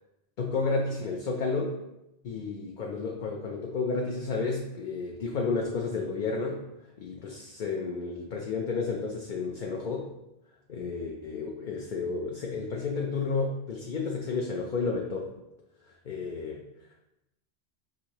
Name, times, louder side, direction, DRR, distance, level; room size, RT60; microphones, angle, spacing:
voice 1, 0.4-1.8 2.2-6.6 7.0-10.1 10.7-15.3 16.0-16.6, left 4 dB, 55° left, 0 dB, 0.6 m, -31 dB
6.2 x 2.7 x 2.9 m, 0.91 s
omnidirectional pair, 1.1 m